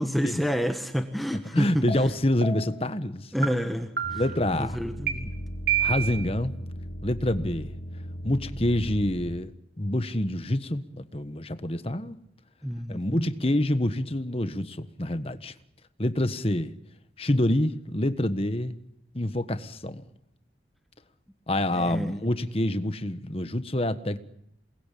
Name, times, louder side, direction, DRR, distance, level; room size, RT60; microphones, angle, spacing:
voice 1, 0.0-1.9 3.3-4.2 4.5-5.3 7.4-7.5 12.6-13.3 21.7-22.1, equal, ahead, 1.4 m, -29 dB
voice 2, 1.5-3.3 4.1-4.8 5.8-6.6 7.0-7.7 8.2-9.5 9.8-12.2 12.9-15.5 16.0-16.7 17.2-18.8 19.1-20.0 21.5-24.2, left 1 dB, 30° left, 1.4 m, -27 dB
sound 1, 1.9-2.0 2.4-2.8 3.4-3.5 4.0-4.4 5.1-5.2 5.7-6.3, right 8 dB, 60° right, 4.1 m, -28 dB
sound 2, 4.0-9.4, equal, 75° left, 2.5 m, -37 dB
28.5 x 20.5 x 8.5 m
head